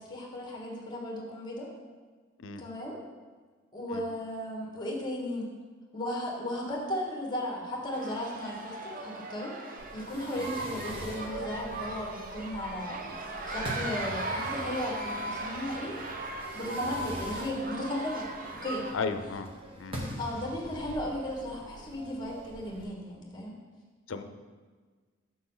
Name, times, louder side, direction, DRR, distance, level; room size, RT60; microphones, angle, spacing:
voice 1, 0.0-1.7 2.6-3.0 3.7-5.5 5.9-9.5 9.9-13.1 13.5-16.0 16.5-18.3 18.6-18.8 20.2-23.5, left 1 dB, 20° left, -2 dB, 1.4 m, -35 dB
sound 1, 7.9-18.9, right 2 dB, 45° right, 0.7 m, -38 dB
Fireworks, 9.8-22.8, equal, 30° right, 1.0 m, -44 dB
voice 2, 18.9-19.5 19.8-20.0 24.1-24.2, left 4 dB, 85° left, 9 dB, 0.5 m, -34 dB
6.9 x 6.1 x 3.9 m, 1.5 s
head